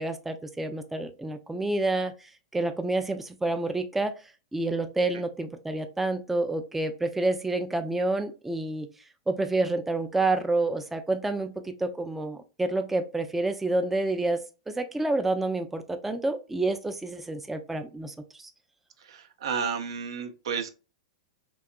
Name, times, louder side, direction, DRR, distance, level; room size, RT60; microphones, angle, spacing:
voice 1, 0.0-8.9 9.3-18.5, right 2 dB, 5° right, 0.3 m, -29 dB
voice 2, 19.0-20.7, right 6 dB, 75° right, 0.5 m, -32 dB
2.7 x 2.3 x 2.2 m
hypercardioid pair, 110°, 3 cm